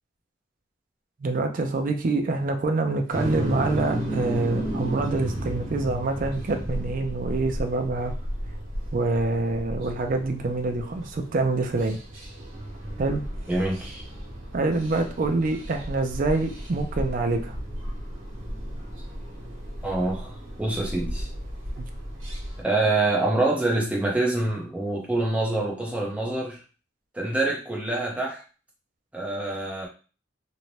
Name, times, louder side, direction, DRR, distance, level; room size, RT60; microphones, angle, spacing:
voice 1, 1.2-8.1 8.9-12.0 13.0-13.2 14.5-17.6 21.8-21.9, right 3 dB, 45° right, 5 dB, 0.4 m, -26 dB
sound 1, 3.1-22.6, equal, 85° right, 0.9 m, -34 dB
voice 2, 13.5-14.0 19.8-21.3 22.6-26.6 27.1-28.4 29.1-29.9, right 2 dB, 5° right, -3 dB, 0.7 m, -26 dB
2.6 x 2.1 x 3.1 m, 0.35 s
head